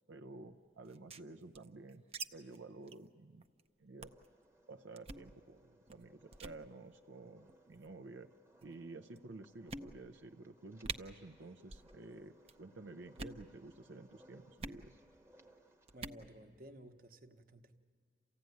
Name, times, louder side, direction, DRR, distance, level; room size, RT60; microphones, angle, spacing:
voice 1, 0.1-2.0 2.3-3.4 3.8-4.1 4.7-8.3 8.6-15.0, right 2 dB, 85° right, 0.6 m, -52 dB
sound 1, 0.8-2.3 2.5-2.6 2.9-3.1 3.4-3.6 4.0-4.3 5.0-5.3 5.9-6.1 6.3-6.6 7.5-7.9 8.6-8.7 9.2-9.3 9.7-10.2 10.5-10.6 10.8-11.0 11.6-11.9 12.2-12.6 13.1-13.4 14.6-14.8 15.9-16.2, right 4 dB, 30° right, 0.6 m, -46 dB
sound 2, 4.0-16.0, right 1 dB, 15° right, 1.0 m, -66 dB
voice 2, 15.9-17.8, right 1 dB, 50° right, 1.1 m, -55 dB
28.5 x 16.0 x 9.4 m
head